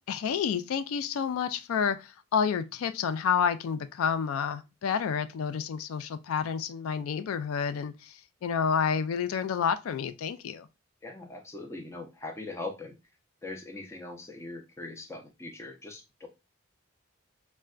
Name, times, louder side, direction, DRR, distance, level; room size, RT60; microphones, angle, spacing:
voice 1, 0.1-10.7, left 7 dB, 85° left, 0.3 m, -29 dB
voice 2, 11.0-13.0 13.4-16.3, left 2 dB, 15° left, 0.4 m, -41 dB
4.3 x 2.1 x 2.3 m
head